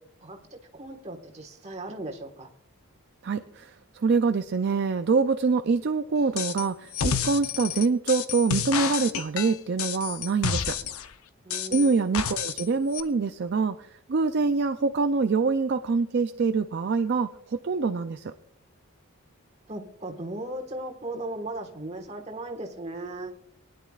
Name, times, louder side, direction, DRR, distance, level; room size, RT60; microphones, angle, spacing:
voice 1, 0.2-2.5 11.4-12.1 19.7-23.3, right 1 dB, 30° right, 2 dB, 1.5 m, -37 dB
voice 2, 3.2-10.8 11.7-18.3, right 4 dB, 50° right, 8 dB, 0.4 m, -25 dB
sound 1, 6.4-6.7 6.9-11.1 11.5-12.7 12.9-13.0, left 7 dB, 75° left, 0.7 m, -29 dB
22.0 x 10.5 x 2.4 m, 0.70 s
head